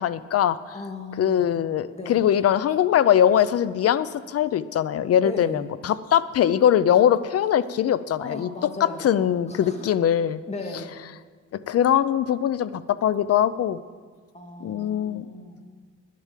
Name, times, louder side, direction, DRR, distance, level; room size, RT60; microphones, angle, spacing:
voice 1, 0.0-0.6 1.2-8.5 8.8-10.4 11.5-13.8 14.6-15.2, left 10 dB, 55° left, 16 dB, 0.6 m, -21 dB
voice 2, 0.7-1.5 1.9-2.2 5.2-5.7 8.2-9.1 9.5-9.9 10.5-10.9 14.3-15.6, left 2 dB, 20° left, 2 dB, 2.2 m, -36 dB
10.5 x 8.4 x 7.4 m, 1.5 s
cardioid pair, 90°, 30 cm